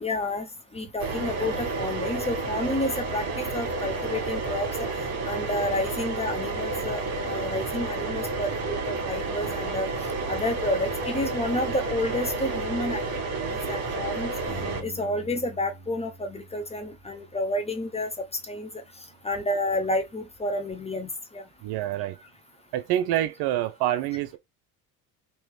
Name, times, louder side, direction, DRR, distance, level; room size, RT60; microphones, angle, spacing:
voice 1, 0.0-4.9 5.2-9.9 10.3-13.2 13.7-14.3 14.8-18.7 19.2-21.4, left 1 dB, 15° left, 0.6 m, -30 dB
sound 1, 1.0-14.8, right 3 dB, 35° right, 1.4 m, -30 dB
Bass guitar, 14.5-20.7, equal, 40° left, 1.3 m, -48 dB
voice 2, 21.6-22.2 22.7-24.4, right 12 dB, 55° right, 0.7 m, -26 dB
3.1 x 3.0 x 3.1 m
supercardioid pair, 90°, 46 cm